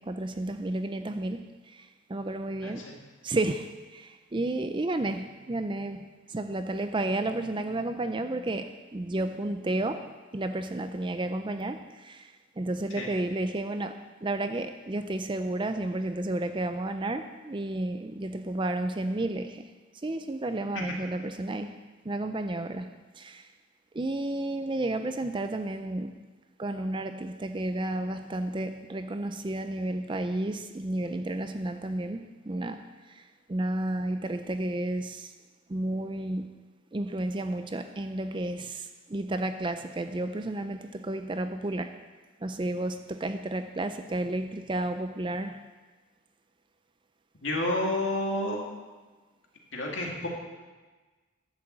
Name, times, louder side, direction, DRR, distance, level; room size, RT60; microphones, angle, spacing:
voice 1, 0.0-2.9 3.2-19.7 20.0-23.5 23.9-26.2 26.6-35.3 35.7-36.5 36.9-42.0 42.4-45.6, right 2 dB, 25° right, 9 dB, 0.4 m, -32 dB
voice 2, 2.6-3.0 13.0-13.1 20.7-20.8 47.4-48.6 49.7-50.3, left 1 dB, 60° left, -1 dB, 2.4 m, -30 dB
11.5 x 7.4 x 7.5 m, 1.3 s
head